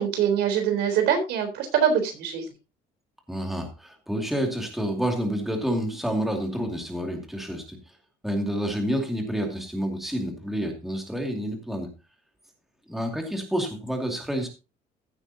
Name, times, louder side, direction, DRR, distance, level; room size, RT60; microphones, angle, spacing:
voice 1, 0.0-2.4, right 8 dB, 80° right, 6 dB, 3.9 m, -23 dB
voice 2, 3.3-7.8 8.2-11.9 12.9-14.5, equal, ahead, 2 dB, 2.4 m, -29 dB
15.5 x 8.9 x 2.8 m, 0.28 s
cardioid pair, 160°, 17 cm